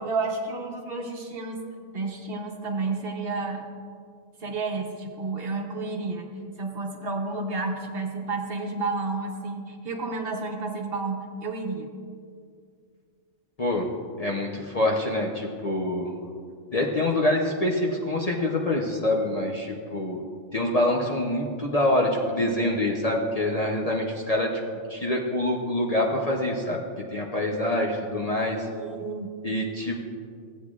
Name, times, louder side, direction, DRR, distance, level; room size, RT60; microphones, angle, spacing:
voice 1, 0.0-1.6 1.9-3.6 4.4-6.3 6.6-11.9 28.7-29.3, right 3 dB, 55° right, 1 dB, 1.1 m, -31 dB
voice 2, 14.2-16.1 16.7-20.2 20.5-24.5 24.9-26.8 27.1-28.7 29.4-30.1, left 1 dB, 35° left, -2 dB, 0.7 m, -25 dB
15.5 x 8.2 x 2.4 m, 2.2 s
omnidirectional pair, 1.3 m